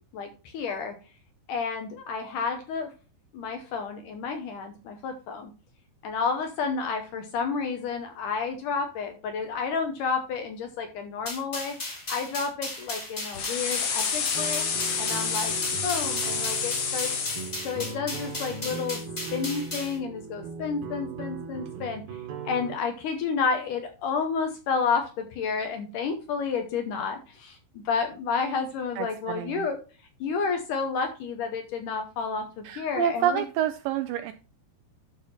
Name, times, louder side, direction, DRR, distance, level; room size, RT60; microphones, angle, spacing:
voice 1, 0.1-1.0 1.5-2.9 3.3-5.5 6.0-11.8 12.1-14.7 15.0-15.6 15.8-17.1 17.6-19.0 19.3-22.2 22.5-29.8 30.2-33.4, left 5 dB, 70° left, 5 dB, 2.1 m, -30 dB
sound 1, 11.3-20.0, left 2 dB, 25° left, 1.6 m, -36 dB
sound 2, 13.3-17.5, left 6 dB, 90° left, 3.8 m, -29 dB
sound 3, 14.4-22.8, right 5 dB, 70° right, 2.7 m, -38 dB
voice 2, 29.0-29.7 32.6-34.3, right 11 dB, 85° right, 9 dB, 2.0 m, -28 dB
12.0 x 4.1 x 4.2 m, 0.33 s
omnidirectional pair, 4.5 m